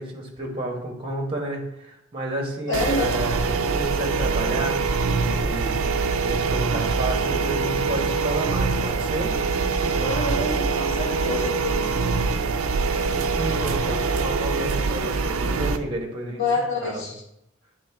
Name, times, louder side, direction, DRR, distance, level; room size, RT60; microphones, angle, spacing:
voice 1, 0.0-4.8 5.1-5.7 6.2-9.4 12.9-16.4 16.8-17.1, right 1 dB, 25° right, 0 dB, 1.3 m, -31 dB
voice 2, 2.7-3.2 9.9-12.0 16.3-17.2, left 2 dB, 65° left, -4 dB, 2.0 m, -27 dB
sound 1, 2.7-15.8, right 4 dB, 85° right, 0.5 m, -24 dB
9.2 x 3.6 x 3.5 m, 0.79 s
head